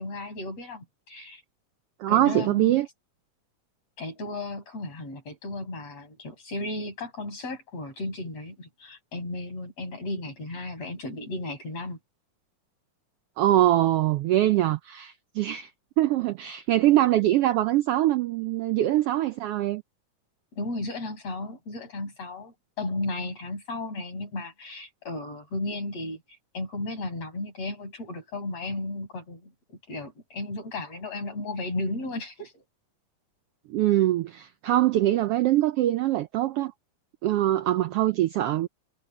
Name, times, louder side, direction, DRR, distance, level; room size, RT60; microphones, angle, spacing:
voice 1, 0.0-1.4 2.1-2.8 4.0-12.0 20.5-32.6, left 2 dB, 55° left, 8.1 m, -35 dB
voice 2, 2.0-2.9 13.4-15.7 16.0-19.8 33.7-36.7 37.2-38.7, right 14 dB, 90° right, 1.3 m, -23 dB
omnidirectional pair, 3.4 m